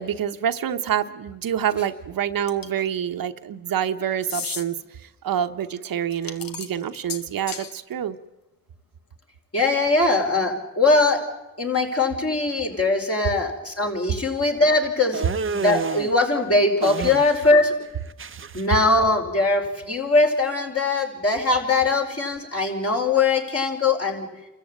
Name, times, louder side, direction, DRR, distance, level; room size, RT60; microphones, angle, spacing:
voice 1, 0.0-4.8 5.0-8.2, right 9 dB, 80° right, 8 dB, 1.0 m, -27 dB
sound 1, 2.5-2.9 4.2-4.6 6.1-7.7, left 6 dB, 80° left, 1.3 m, -34 dB
voice 2, 9.5-11.2 11.6-15.2 15.5-17.7 18.5-24.3, left 3 dB, 45° left, 1 dB, 5.2 m, -21 dB
sound 2, 15.1-16.1 16.8-17.6 17.8-18.6, right 5 dB, 35° right, 0.7 m, -29 dB
27.0 x 14.0 x 8.9 m, 1.0 s
cardioid pair, 50°, 34 cm